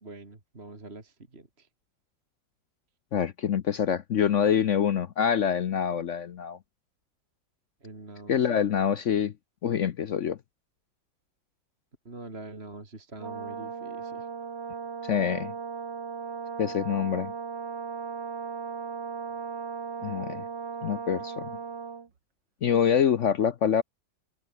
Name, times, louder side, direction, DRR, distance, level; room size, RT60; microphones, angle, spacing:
voice 1, 0.0-1.7 7.8-8.6 12.0-14.3, right 2 dB, 30° right, 3.2 m, -44 dB
voice 2, 3.1-6.6 8.3-9.3 9.6-10.4 15.0-15.5 16.6-17.3 20.0-20.4 20.8-21.5 22.6-23.8, left 8 dB, 60° left, 0.8 m, -25 dB
Brass instrument, 13.2-22.1, right 6 dB, 70° right, 2.8 m, -37 dB
open air
omnidirectional pair, 2.0 m